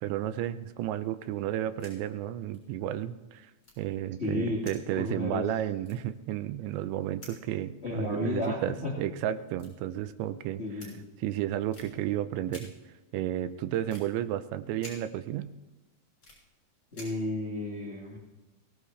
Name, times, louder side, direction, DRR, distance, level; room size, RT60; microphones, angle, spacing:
voice 1, 0.0-3.5 3.8-10.6 11.2-12.7 13.1-15.5, right 12 dB, 85° right, 12 dB, 3.0 m, -32 dB
sound 1, 1.6-1.9 2.2-2.3 2.5-2.7 3.6-4.2 4.6-5.5 5.8-6.9 7.2-7.5 8.6-8.7 9.5-10.3 10.8-10.9 11.7-11.9 12.5-12.6 13.9-14.1 14.8-14.9 15.6-16.4 16.9-17.3, left 1 dB, 25° left, 6.9 m, -50 dB
voice 2, 4.2-4.7 5.0-5.5 7.8-9.0 10.6-11.0 16.9-18.2, left 2 dB, 45° left, -3 dB, 0.8 m, -33 dB
23.0 x 18.0 x 3.3 m, 1.1 s
omnidirectional pair, 5.1 m